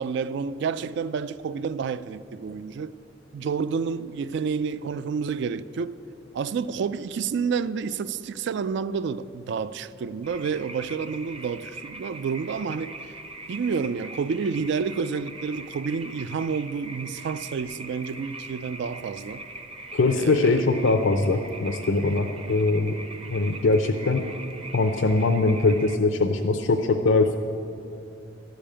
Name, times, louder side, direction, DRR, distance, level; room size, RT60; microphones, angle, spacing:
voice 1, 0.0-3.0 3.3-6.0 6.3-13.0 13.5-19.4 20.1-20.6, right 5 dB, 65° right, 0.3 m, -29 dB
sound 1, 10.2-26.0, right 2 dB, 30° right, 0.7 m, -41 dB
voice 2, 19.9-23.0 23.3-24.2 24.7-27.4, left 3 dB, 70° left, 0.5 m, -22 dB
12.5 x 5.2 x 8.7 m
head